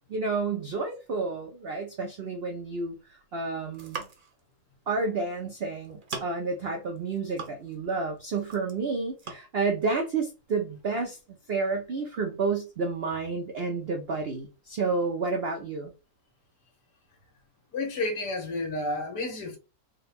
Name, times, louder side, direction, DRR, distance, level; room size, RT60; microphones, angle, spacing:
voice 1, 0.1-3.0 3.3-4.0 4.9-11.2 11.5-15.9, right 4 dB, 85° right, 0.5 m, -30 dB
sound 1, 3.6-4.4 5.4-5.6 5.8-6.5 7.0-7.9 8.2-8.8 9.2-9.4, right 5 dB, 45° right, 0.7 m, -40 dB
voice 2, 17.7-19.6, left 2 dB, 70° left, 1.8 m, -31 dB
3.9 x 2.2 x 4.1 m
omnidirectional pair, 1.9 m